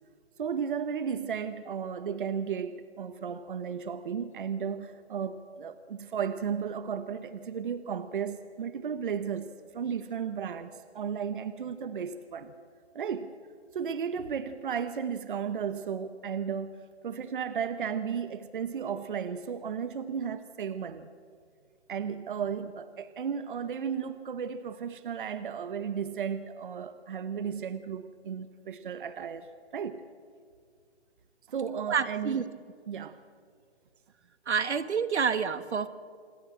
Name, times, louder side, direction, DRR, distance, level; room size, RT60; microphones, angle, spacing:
voice 1, 0.4-9.5 9.7-12.5 12.9-13.3 13.7-16.8 17.0-21.1 21.9-30.0 31.5-32.4 32.9-33.2, right 7 dB, 50° right, 11 dB, 0.9 m, -34 dB
voice 2, 31.9-32.5 34.5-35.9, right 6 dB, 80° right, 12 dB, 1.4 m, -28 dB
27.0 x 11.5 x 8.8 m, 2.1 s
hypercardioid pair, 165°, 33 cm